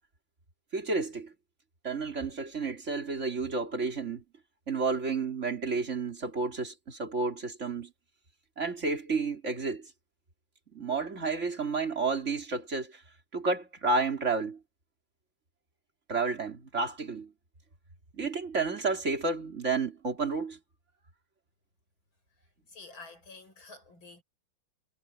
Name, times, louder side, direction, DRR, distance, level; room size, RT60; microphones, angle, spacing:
voice 1, 0.7-1.3 1.8-4.2 4.7-7.9 8.6-9.9 10.7-13.0 13.3-14.6 16.1-17.3 18.1-20.6, right 4 dB, 35° right, 3.6 m, -31 dB
voice 2, 22.7-24.2, left 3 dB, 75° left, 8.3 m, -49 dB
omnidirectional pair, 2.2 m